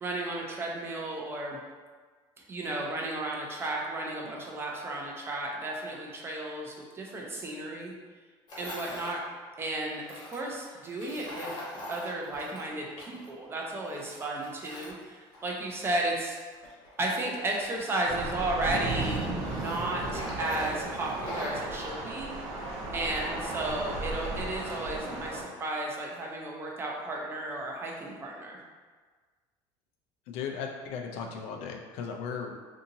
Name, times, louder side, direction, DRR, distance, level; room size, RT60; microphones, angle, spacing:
voice 1, 0.0-1.6 2.5-7.9 8.6-9.2 9.6-11.5 11.9-16.4 17.0-22.3 22.9-28.6, right 2 dB, 20° right, -1 dB, 0.5 m, -34 dB
Tools, 8.5-9.1 10.0-13.3 13.6-15.9 16.5-18.1 18.5-21.7, left 1 dB, 45° left, 1.0 m, -43 dB
Thunder / Rain, 18.1-25.4, right 2 dB, 65° right, 0.6 m, -35 dB
voice 2, 30.3-32.5, left 6 dB, 75° left, 2 dB, 0.4 m, -36 dB
2.7 x 2.6 x 2.6 m, 1.5 s
cardioid pair, 130°, 11 cm